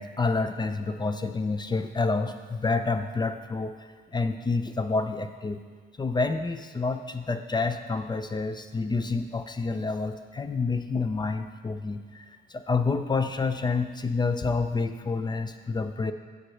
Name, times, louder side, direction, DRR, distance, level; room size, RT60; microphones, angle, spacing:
voice 1, 0.0-5.6 6.0-16.1, left 4 dB, 20° left, 9 dB, 0.5 m, -28 dB
9.0 x 7.7 x 3.3 m, 1.5 s
cardioid pair, 90°, 20 cm